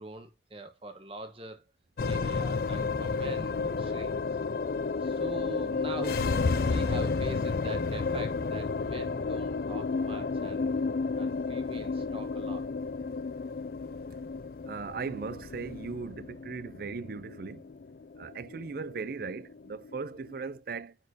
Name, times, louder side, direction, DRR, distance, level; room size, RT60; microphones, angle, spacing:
voice 1, 0.0-1.6 2.0-4.2 5.0-10.8 11.2-12.7, right 1 dB, 30° right, 1.1 m, -43 dB
sound 1, 2.0-20.5, left 4 dB, 55° left, 0.4 m, -32 dB
voice 2, 14.6-17.7 18.2-21.0, right 4 dB, 50° right, 0.4 m, -38 dB
9.5 x 4.3 x 2.6 m
head